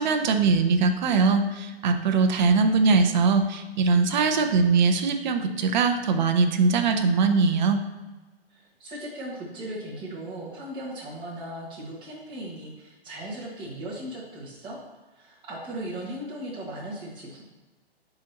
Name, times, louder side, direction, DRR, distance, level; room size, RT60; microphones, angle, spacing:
voice 1, 0.0-7.8, right 4 dB, 45° right, 6 dB, 0.7 m, -21 dB
voice 2, 8.5-14.8 15.1-17.4, right 1 dB, 15° right, -6 dB, 1.7 m, -37 dB
9.9 x 3.9 x 2.9 m, 1.2 s
hypercardioid pair, 145°, 32 cm